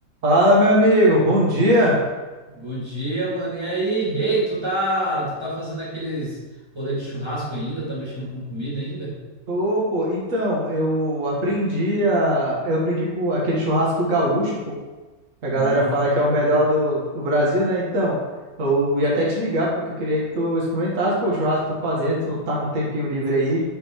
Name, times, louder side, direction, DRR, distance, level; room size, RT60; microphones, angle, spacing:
voice 1, 0.2-2.0 9.5-14.7 15.4-18.2 18.6-19.7 20.0-23.6, equal, 45° right, -5 dB, 2.0 m, -21 dB
voice 2, 2.5-6.4 6.7-9.2 15.5-16.5, right 1 dB, 15° right, -7 dB, 2.3 m, -27 dB
5.7 x 5.7 x 4.6 m, 1.2 s
omnidirectional pair, 2.1 m